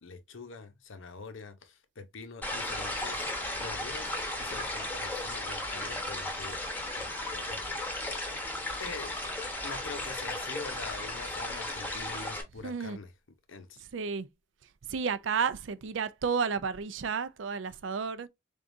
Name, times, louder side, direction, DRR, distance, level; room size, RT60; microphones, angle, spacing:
voice 1, 0.0-4.1 4.4-6.6 7.0-8.5 8.8-9.2 9.6-13.1 13.5-13.8, left 4 dB, 80° left, 0.8 m, -45 dB
sound 1, 2.4-12.4, left 1 dB, 10° left, 0.9 m, -35 dB
voice 2, 12.6-13.0 13.9-14.3 14.9-18.3, right 5 dB, 75° right, 0.5 m, -32 dB
3.8 x 3.5 x 2.6 m
head